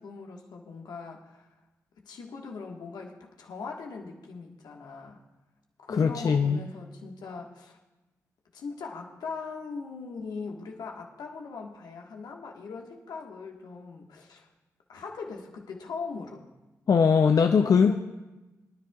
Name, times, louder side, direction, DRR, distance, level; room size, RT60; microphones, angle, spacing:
voice 1, 0.0-1.5 2.0-5.2 5.8-7.8 8.5-14.5 14.9-16.5 17.6-18.0, left 4 dB, 80° left, 1 dB, 1.6 m, -40 dB
voice 2, 5.9-6.6 16.9-17.9, left 6 dB, 55° left, 6 dB, 0.5 m, -21 dB
24.0 x 10.0 x 2.4 m, 1.1 s
supercardioid pair, 45°, 7 cm